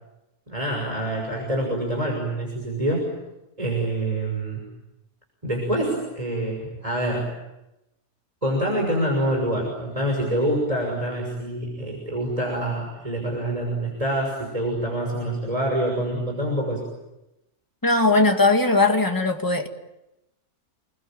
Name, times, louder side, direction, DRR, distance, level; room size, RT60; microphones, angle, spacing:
voice 1, 0.5-3.1 3.6-4.7 5.4-7.3 8.4-16.8, right 1 dB, 25° right, 6.4 m, -26 dB
voice 2, 17.8-19.7, left 3 dB, 15° left, 2.2 m, -19 dB
29.5 x 21.5 x 9.1 m
omnidirectional pair, 1.6 m